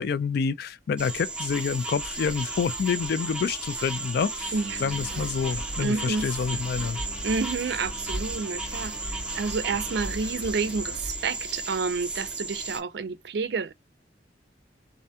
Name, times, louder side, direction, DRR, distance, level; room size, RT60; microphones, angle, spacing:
voice 1, 0.0-4.5 4.8-7.0, left 6 dB, 60° left, 0.3 m, -28 dB
sound 1, 1.0-12.8, right 3 dB, 5° right, 0.6 m, -35 dB
Engine, 1.5-12.3, equal, 85° left, 1.2 m, -40 dB
voice 2, 4.5-4.8 5.1-5.3 5.8-6.3 7.2-13.7, right 4 dB, 65° right, 0.4 m, -29 dB
2.5 x 2.2 x 2.7 m
head